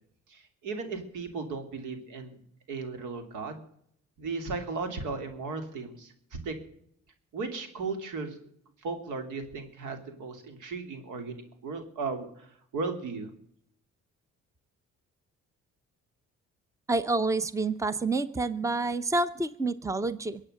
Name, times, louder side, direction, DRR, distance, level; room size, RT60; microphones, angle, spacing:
voice 1, 0.3-2.4 2.7-3.6 4.2-6.6 7.3-8.4 8.8-12.5 12.7-13.3, right 4 dB, 85° right, 7 dB, 3.0 m, -36 dB
voice 2, 16.9-20.4, right 3 dB, 10° right, 15 dB, 0.8 m, -28 dB
23.0 x 8.7 x 6.6 m, 0.68 s
cardioid pair, 90°, 30 cm